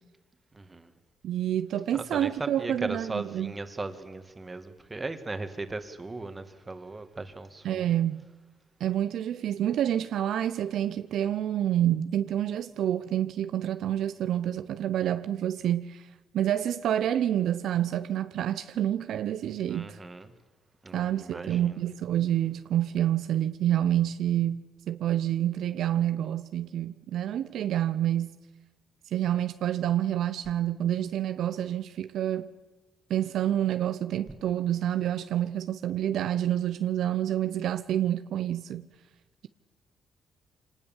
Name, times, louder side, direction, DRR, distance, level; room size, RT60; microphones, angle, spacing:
voice 1, 0.5-0.9 1.9-7.9 19.7-20.3 20.8-21.8, right 3 dB, 20° right, 2.1 m, -37 dB
voice 2, 1.2-3.5 7.6-8.2 8.8-16.1 16.3-20.0 20.9-28.4 29.1-32.5 33.1-38.9, right 11 dB, 75° right, 0.7 m, -28 dB
26.0 x 19.0 x 7.3 m
cardioid pair, 90°, 0 cm